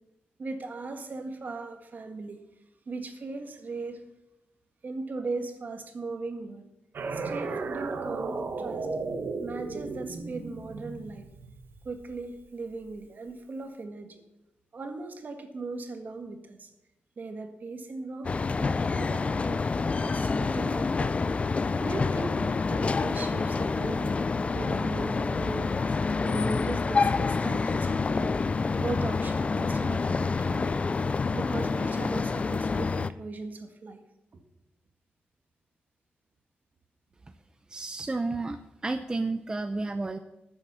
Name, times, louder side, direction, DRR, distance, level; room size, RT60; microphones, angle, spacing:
voice 1, 0.4-2.4 2.8-4.0 4.8-6.7 7.1-8.9 9.4-11.3 11.8-14.2 14.7-16.7 17.2-19.6 20.0-21.2 21.8-24.2 24.5-26.0 26.2-28.3 28.8-30.8 31.3-34.0 34.3-34.4, right 3 dB, 50° right, 6 dB, 1.7 m, -38 dB
sound 1, 6.9-12.3, right 3 dB, 65° right, 1.2 m, -35 dB
sound 2, 18.2-33.1, left 4 dB, 35° left, 0.4 m, -27 dB
voice 2, 37.7-40.2, right 3 dB, 20° right, 8 dB, 0.6 m, -31 dB
13.5 x 7.3 x 6.8 m, 0.90 s
wide cardioid pair, 125°, 4 cm